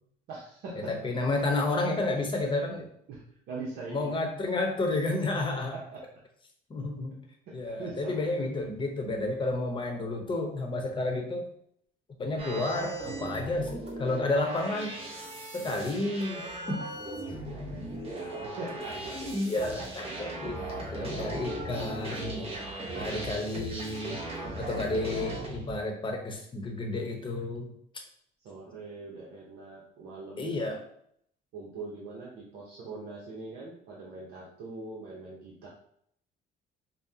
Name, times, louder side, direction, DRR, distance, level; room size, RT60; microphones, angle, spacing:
voice 1, 0.3-0.9 3.1-4.1 5.7-6.0 7.5-8.3 17.5-19.3 19.8-19.9 20.8-20.9 22.9-23.2 24.4-24.6 28.4-30.5 31.5-35.7, right 3 dB, 75° right, -4 dB, 0.8 m, -42 dB
voice 2, 0.9-2.9 3.9-5.7 6.7-7.2 7.5-11.5 12.2-15.0 15.5-16.9 19.1-20.6 20.9-22.4 22.9-24.2 24.6-27.7 30.4-30.8, left 2 dB, 30° left, 2 dB, 0.9 m, -31 dB
sound 1, 12.4-25.7, right 1 dB, 35° right, 0.9 m, -38 dB
5.3 x 2.2 x 2.8 m, 0.69 s
cardioid pair, 110°, 17 cm